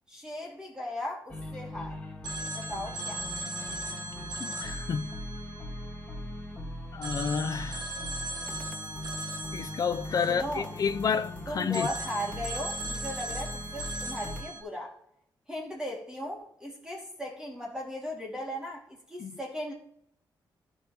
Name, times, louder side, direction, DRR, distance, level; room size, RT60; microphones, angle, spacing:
voice 1, 0.1-2.0 2.5-3.2 10.3-10.7 11.5-14.9 15.5-19.7, equal, 10° right, 2.4 m, -37 dB
sound 1, 1.3-14.4, left 1 dB, 15° left, 1.8 m, -40 dB
Telephone, 2.2-6.5 7.0-11.2 11.7-14.6, right 2 dB, 65° right, 2.4 m, -39 dB
voice 2, 4.4-5.2 6.9-7.9 9.5-11.9 19.2-19.3, left 6 dB, 50° left, 0.5 m, -30 dB
15.0 x 5.4 x 3.0 m
cardioid pair, 115°, 8 cm